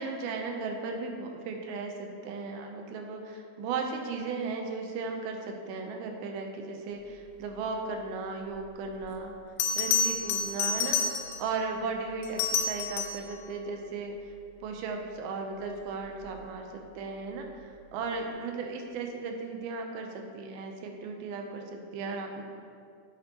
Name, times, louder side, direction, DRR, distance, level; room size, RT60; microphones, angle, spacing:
voice 1, 0.0-9.4 9.8-11.0 11.4-14.3 14.6-22.4, right 4 dB, 85° right, 3 dB, 2.5 m, -36 dB
Bell, 9.0-9.1 9.6-11.5 12.2-13.3 16.0-16.2, left 5 dB, 90° left, 2.7 m, -29 dB
8.8 x 7.6 x 2.9 m, 2.2 s
omnidirectional pair, 4.5 m